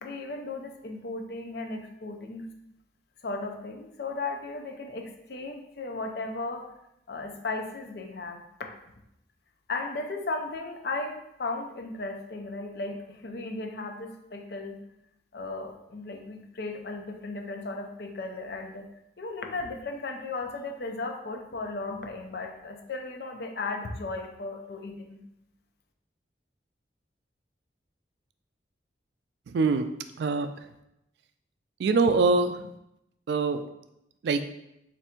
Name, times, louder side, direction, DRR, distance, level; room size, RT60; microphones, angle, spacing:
voice 1, 0.0-2.5 3.2-6.6 7.1-8.4 9.7-14.8 15.3-18.9 19.2-25.2, left 3 dB, 60° left, 3 dB, 0.5 m, -36 dB
voice 2, 29.5-29.8 30.2-30.5 31.8-32.6 33.3-33.6 34.2-34.4, right 4 dB, 70° right, 9 dB, 0.3 m, -23 dB
3.3 x 2.6 x 4.3 m, 0.83 s
head